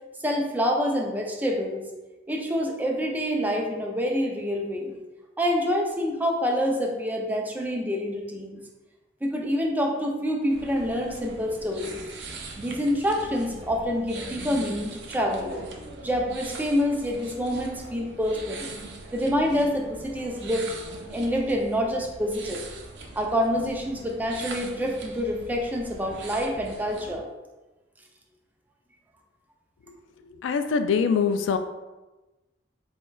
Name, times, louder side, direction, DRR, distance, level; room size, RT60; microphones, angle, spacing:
voice 1, 0.2-1.9 2.3-5.0 5.4-8.6 9.2-12.0 12.6-15.6 16.0-18.7 19.1-20.7 21.1-22.6 23.2-27.2, equal, 10° right, 1 dB, 0.4 m, -27 dB
sound 1, 10.5-27.2, right 3 dB, 65° right, 0.5 m, -41 dB
voice 2, 30.4-31.6, left 6 dB, 80° left, 9 dB, 0.3 m, -23 dB
4.2 x 3.2 x 2.3 m, 1.1 s
head